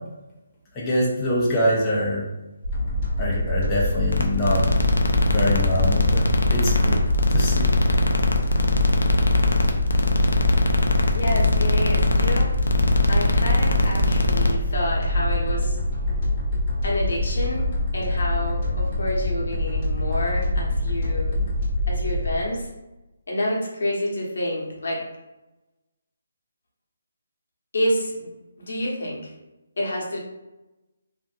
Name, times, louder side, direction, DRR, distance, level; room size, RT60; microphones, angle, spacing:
voice 1, 0.8-2.2 3.2-4.6 5.2-6.2 6.5-7.0 7.3-7.7, equal, 15° left, -6 dB, 0.5 m, -24 dB
sound 1, 2.6-22.4, left 1 dB, 85° right, 0.6 m, -25 dB
sound 2, 2.7-21.9, left 2 dB, 35° left, 0.9 m, -38 dB
sound 3, 4.1-14.5, left 2 dB, 85° left, 0.4 m, -21 dB
voice 2, 11.1-12.5 13.1-15.8 16.8-17.6 17.9-21.3 21.9-22.7 23.3-25.0 27.7-28.3 28.6-29.2 29.8-30.2, left 1 dB, 70° left, -3 dB, 0.9 m, -28 dB
2.5 x 2.5 x 2.4 m, 1.0 s
hypercardioid pair, 160°, 0 cm